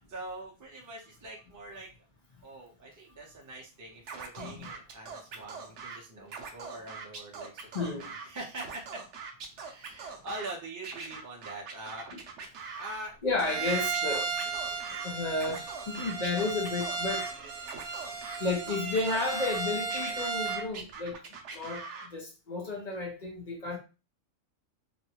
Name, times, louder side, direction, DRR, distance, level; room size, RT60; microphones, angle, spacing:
voice 1, 0.0-1.9 2.4-9.0 9.6-12.1 12.8-13.8 14.4-14.5 23.6-23.8, right 2 dB, 20° right, 0.5 m, -44 dB
Scratching (performance technique), 4.1-6.0 6.3-8.3 8.5-10.5 10.8-13.0 13.4-15.1 15.4-17.3 17.6-19.6 19.9-22.1, right 5 dB, 60° right, 0.9 m, -42 dB
voice 2, 4.4-4.7 7.7-8.1 13.2-14.3 14.9-17.3 18.4-21.2 21.5-23.8, left 3 dB, 45° left, 0.5 m, -32 dB
Bowed string instrument, 13.4-20.7, right 5 dB, 80° right, 1.2 m, -34 dB
3.0 x 2.5 x 2.9 m
omnidirectional pair, 1.6 m